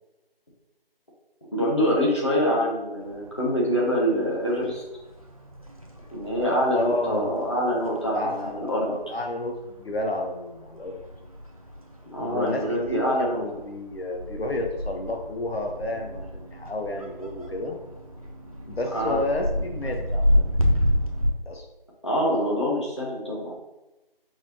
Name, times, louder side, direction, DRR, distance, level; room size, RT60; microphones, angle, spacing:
voice 1, 1.5-4.8 6.1-8.9 12.1-13.4 18.9-19.2 22.0-23.5, equal, 30° left, -5 dB, 1.0 m, -25 dB
sound 1, 3.0-21.3, equal, 40° right, 0.5 m, -31 dB
voice 2, 6.7-7.3 8.1-11.0 12.2-17.8 18.7-20.4 21.5-21.7, left 1 dB, 90° left, 2 dB, 1.0 m, -31 dB
4.5 x 4.1 x 2.8 m, 1.0 s
figure-of-eight pair, 175°, 30 cm